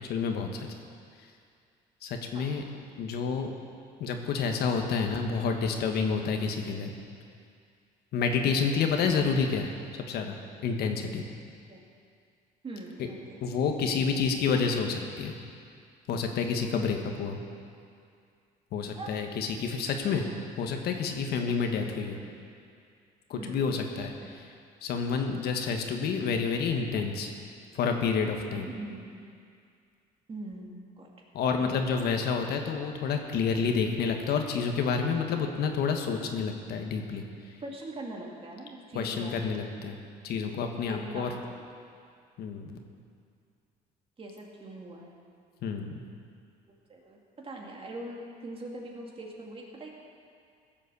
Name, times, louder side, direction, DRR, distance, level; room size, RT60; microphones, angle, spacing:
voice 1, 0.1-0.7 2.0-2.6 3.0-3.5 4.0-6.9 8.1-9.7 10.1-10.4 10.6-11.2 13.4-15.3 16.1-17.4 18.7-20.2 20.6-22.2 23.3-24.1 24.8-27.3 27.7-28.7 31.3-37.2 38.9-40.0 40.2-41.3 42.4-42.8 45.6-45.9, left 5 dB, 70° left, 4 dB, 1.4 m, -29 dB
voice 2, 8.4-8.7 11.7-11.8 12.6-13.4 13.9-14.2 16.7-17.0 18.9-19.2 19.7-20.5 21.5-21.9 23.3-23.7 24.0-24.3 28.7-29.2 30.3-31.1 31.6-32.0 37.6-39.6 40.7-41.6 44.2-45.1 46.9-49.9, right 2 dB, 35° right, -1 dB, 2.5 m, -43 dB
16.0 x 7.5 x 6.9 m, 2.3 s
cardioid pair, 110°, 17 cm